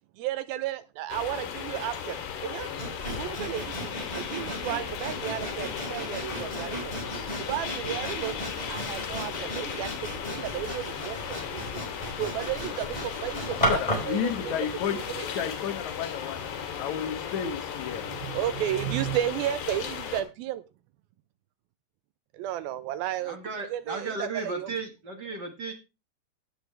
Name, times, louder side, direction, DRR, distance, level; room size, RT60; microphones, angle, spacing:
voice 1, 0.2-2.7 3.1-3.7 4.1-6.9 7.4-8.4 8.7-11.6 12.1-15.5 18.1-20.6 22.3-23.4 23.7-24.7, right 12 dB, 80° right, 14 dB, 2.2 m, -33 dB
sound 1, 1.1-20.2, left 8 dB, 85° left, 4.1 m, -36 dB
Sawing, 2.8-14.1, equal, 10° left, 4.8 m, -35 dB
voice 2, 13.7-16.4 16.8-18.1, left 8 dB, 60° left, 7 dB, 2.1 m, -32 dB
voice 3, 23.2-25.7, right 3 dB, 55° right, 4 dB, 1.2 m, -35 dB
17.0 x 8.3 x 3.3 m, 0.27 s
omnidirectional pair, 4.7 m